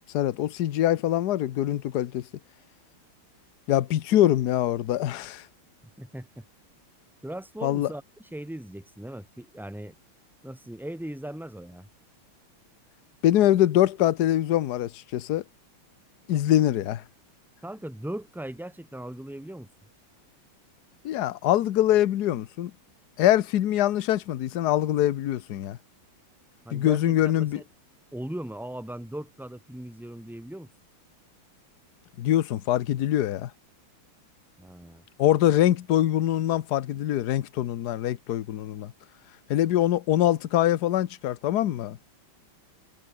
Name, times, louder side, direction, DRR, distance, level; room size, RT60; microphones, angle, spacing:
voice 1, 0.1-2.2 3.7-5.4 7.6-7.9 13.2-15.4 16.3-17.0 21.0-22.7 23.2-25.8 26.7-27.6 32.2-33.5 35.2-38.9 39.5-42.0, left 12 dB, 60° left, 1.2 m, -24 dB
voice 2, 6.0-6.4 7.2-9.9 10.4-11.9 17.6-19.7 26.6-27.6 28.1-30.7 34.6-35.0, right 1 dB, ahead, 1.4 m, -38 dB
omnidirectional pair, 2.3 m